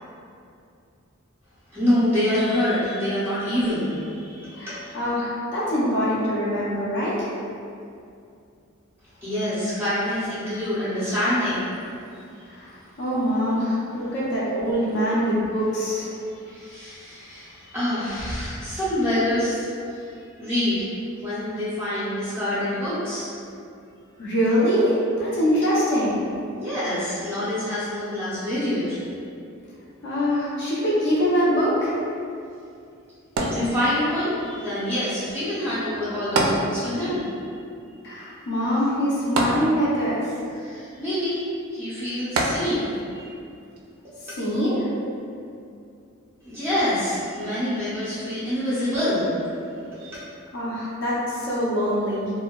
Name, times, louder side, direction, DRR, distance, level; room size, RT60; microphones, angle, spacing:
voice 1, 1.7-4.9 9.2-11.8 16.2-20.1 20.4-20.9 21.2-23.3 26.5-29.0 33.4-37.3 40.5-41.5 41.7-43.4 44.3-44.4 46.4-49.3 49.9-50.2, left 1 dB, 10° right, -12 dB, 0.5 m, -26 dB
voice 2, 4.6-7.3 12.5-12.7 13.0-16.1 24.2-26.2 30.0-32.0 38.0-40.3 44.4-44.9 50.5-52.3, equal, 55° left, -8 dB, 0.5 m, -23 dB
sound 1, 33.4-34.3 36.4-37.2 37.5-37.6 39.4-40.2 42.4-43.1 43.8-43.9, right 2 dB, 75° right, 0.3 m, -25 dB
2.6 x 2.1 x 2.2 m, 2.5 s
head